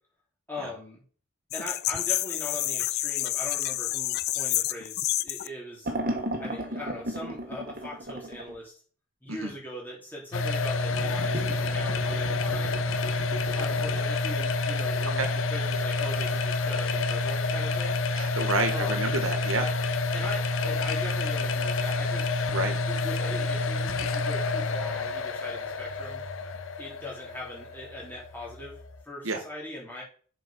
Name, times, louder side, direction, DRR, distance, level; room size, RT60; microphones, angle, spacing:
voice 1, 0.5-1.0 1.5-5.9 6.4-8.7 9.2-12.8 13.5-15.2 15.5-18.0 18.7-19.1 20.1-22.3 22.9-26.2 26.8-30.0, left 1 dB, 10° left, -4 dB, 3.7 m, -40 dB
sound 1, 1.5-5.5, left 16 dB, 50° left, 0.4 m, -29 dB
sound 2, 5.8-8.5 10.9-14.0, right 1 dB, 45° right, 1.6 m, -35 dB
sound 3, 10.3-29.0, left 3 dB, 70° left, 0.8 m, -28 dB
voice 2, 18.1-19.7 22.5-22.8 29.2-29.4, right 3 dB, 80° right, 6 dB, 1.6 m, -29 dB
7.4 x 5.4 x 5.3 m, 0.42 s
head